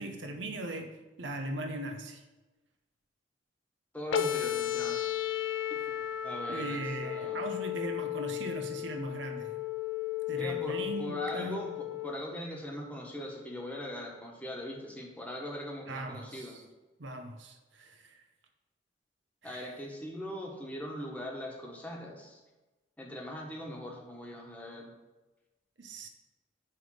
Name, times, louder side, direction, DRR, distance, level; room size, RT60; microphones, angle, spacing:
voice 1, 0.0-2.2 6.5-9.6 10.3-11.7 15.9-16.6 17.0-18.2 19.4-19.8 25.8-26.1, right 1 dB, 70° right, 0.8 m, -39 dB
voice 2, 3.9-5.1 5.7-5.8 6.2-7.4 10.3-16.6 19.4-22.4 23.0-24.9, left 1 dB, 10° left, 1.3 m, -40 dB
sound 1, 4.1-12.1, left 11 dB, 80° left, 0.5 m, -34 dB
9.9 x 3.5 x 6.4 m
head